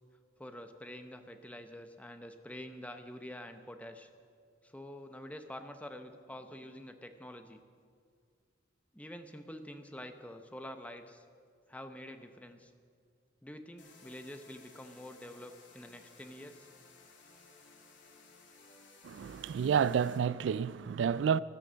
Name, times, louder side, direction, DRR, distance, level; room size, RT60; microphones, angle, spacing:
voice 1, 0.4-4.1 4.6-7.6 8.9-11.2 11.7-12.7 13.4-16.7, left 1 dB, 5° left, 0.8 m, -47 dB
sound 1, 13.8-20.2, left 4 dB, 75° left, 2.4 m, -58 dB
voice 2, 19.0-21.4, right 7 dB, 75° right, 0.3 m, -30 dB
13.5 x 13.0 x 6.3 m
head